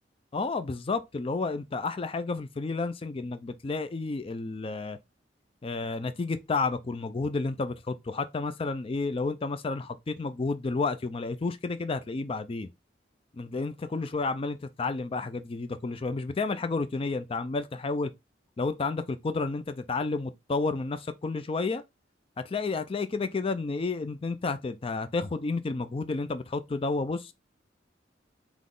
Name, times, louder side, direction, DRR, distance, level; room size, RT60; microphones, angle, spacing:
voice 1, 0.3-5.0 5.6-12.7 13.3-18.1 18.6-21.8 22.4-27.3, left 3 dB, 30° left, 0.4 m, -31 dB
3.9 x 3.0 x 3.7 m
head